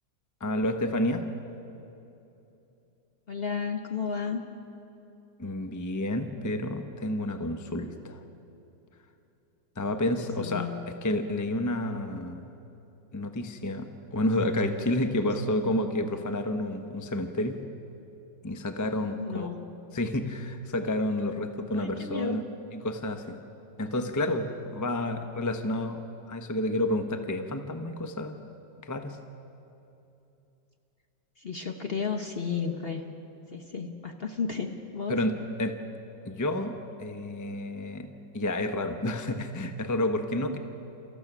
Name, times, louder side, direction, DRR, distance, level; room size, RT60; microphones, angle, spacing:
voice 1, 0.4-1.2 5.4-8.2 9.8-10.7 11.0-12.4 13.1-17.6 18.4-19.5 19.9-22.4 22.8-23.3 23.8-26.0 26.3-28.4 28.8-29.2 35.1-35.3 35.6-35.7 36.2-38.1 38.3-40.6, left 1 dB, 15° left, 6 dB, 0.6 m, -30 dB
voice 2, 3.3-4.4 10.4-10.8 15.4-15.5 19.2-19.7 21.7-22.4 31.4-33.2 33.5-35.2 40.4-40.6, left 5 dB, 45° left, 4 dB, 0.9 m, -33 dB
29.0 x 14.5 x 6.1 m, 2.9 s
omnidirectional pair, 2.0 m